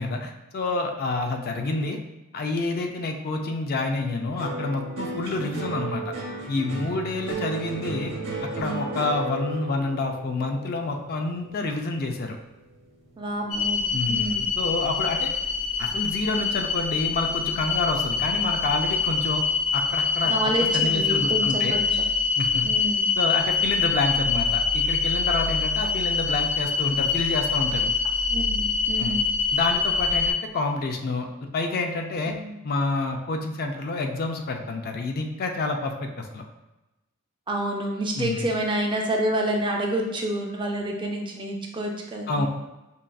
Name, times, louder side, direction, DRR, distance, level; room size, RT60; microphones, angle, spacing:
voice 1, 0.0-2.0 2.3-6.1 6.5-8.1 8.4-12.4 13.9-15.3 15.8-19.4 19.7-20.3 20.7-21.8 22.4-22.6 23.2-27.9 29.0-29.2 29.5-32.3 32.6-36.5 38.2-38.5 42.3-42.5, left 3 dB, 45° left, 4 dB, 0.4 m, -28 dB
sound 1, 4.4-12.8 13.2-13.8, right 3 dB, 65° right, 0.9 m, -35 dB
voice 2, 13.2-14.4 20.2-22.0 22.6-23.1 28.3-29.3 32.3-32.5 37.5-42.5, right 1 dB, 20° right, 1 dB, 0.4 m, -28 dB
sound 2, 13.5-30.3, left 5 dB, 70° left, 0.8 m, -25 dB
5.3 x 2.4 x 2.2 m, 0.99 s
head